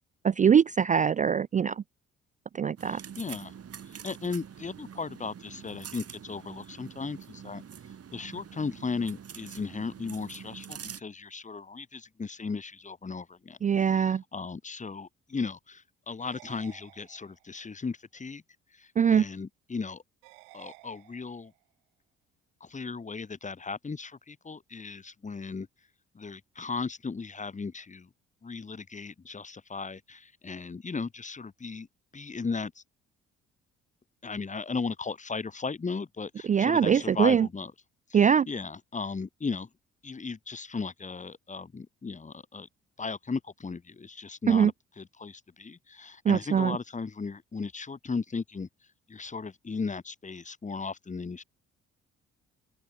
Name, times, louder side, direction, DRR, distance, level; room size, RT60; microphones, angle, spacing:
voice 1, 0.2-1.8 2.5-3.0 13.6-14.2 19.0-19.3 36.5-37.5 38.1-38.5 44.5-44.7 46.3-46.8, right 7 dB, 25° right, 0.4 m, -22 dB
voice 2, 2.8-3.5 4.0-7.6 8.1-13.6 13.9-18.4 18.7-20.0 20.5-21.5 22.6-25.7 26.1-28.1 28.4-31.9 32.1-32.8 34.2-37.7 38.1-39.7 40.0-42.7 43.0-48.7 49.1-51.4, left 4 dB, 25° left, 1.2 m, -36 dB
sound 1, 2.8-11.0, right 8 dB, 50° right, 5.1 m, -45 dB
sound 2, 16.2-17.6 20.2-21.6, right 40 dB or more, 85° right, 5.1 m, -54 dB
open air
hypercardioid pair, 50°, 30 cm